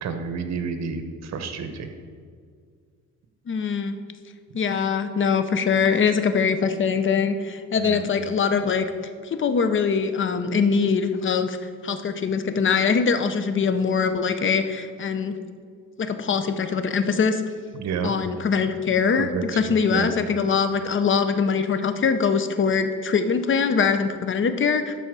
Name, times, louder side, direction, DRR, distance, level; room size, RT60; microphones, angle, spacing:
voice 1, 0.0-1.9 7.8-8.0 17.7-18.1 19.2-19.5 19.9-20.1, right 6 dB, 60° right, 7 dB, 0.9 m, -29 dB
voice 2, 3.5-4.0 4.5-8.8 9.2-11.6 11.8-15.3 16.0-17.4 18.0-24.9, left 5 dB, 40° left, 9 dB, 0.7 m, -22 dB
12.5 x 4.2 x 4.8 m, 2.1 s
cardioid pair, 90°, 30 cm